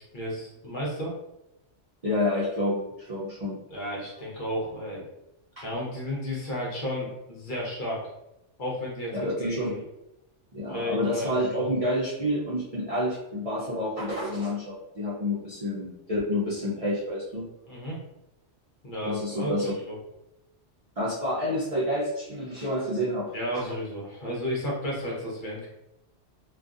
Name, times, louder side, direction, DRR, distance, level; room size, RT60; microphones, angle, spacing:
voice 1, 0.1-1.2 3.7-5.1 5.6-8.0 8.6-9.8 10.7-11.7 17.7-18.0 18.8-20.0 23.3-25.7, equal, 45° left, -4 dB, 0.8 m, -33 dB
voice 2, 2.0-3.6 5.6-5.7 9.1-9.8 10.5-17.5 19.0-19.7 21.0-23.6, left 1 dB, 50° right, -7 dB, 0.4 m, -29 dB
2.5 x 2.3 x 2.4 m, 0.90 s
omnidirectional pair, 1.2 m